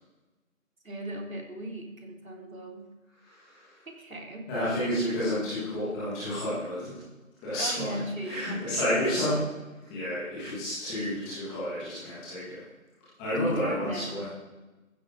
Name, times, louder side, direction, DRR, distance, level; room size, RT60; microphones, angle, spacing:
voice 1, 0.8-2.9 3.9-4.5 7.6-9.2 13.4-14.3, right 1 dB, 75° right, -1 dB, 3.7 m, -38 dB
voice 2, 3.2-3.8 4.5-7.0 7.4-9.4 9.8-12.6 13.2-14.3, left 1 dB, 5° left, -11 dB, 1.5 m, -30 dB
15.0 x 12.0 x 3.7 m, 1.1 s
figure-of-eight pair, 165°, 41 cm